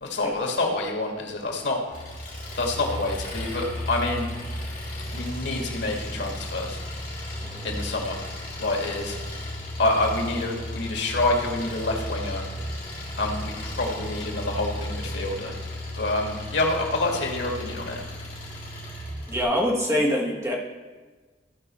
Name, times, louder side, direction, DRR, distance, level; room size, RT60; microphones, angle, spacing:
voice 1, 0.0-1.8 2.5-4.3 5.1-6.8 7.6-8.2 8.6-9.2 9.8-12.4 13.2-15.5 16.0-18.0, left 2 dB, 90° left, 1 dB, 1.7 m, -27 dB
Engine, 1.9-19.4, left 1 dB, 50° left, 3.3 m, -34 dB
voice 2, 19.3-20.5, equal, 15° right, -3 dB, 1.5 m, -25 dB
14.0 x 5.2 x 4.3 m, 1.3 s
head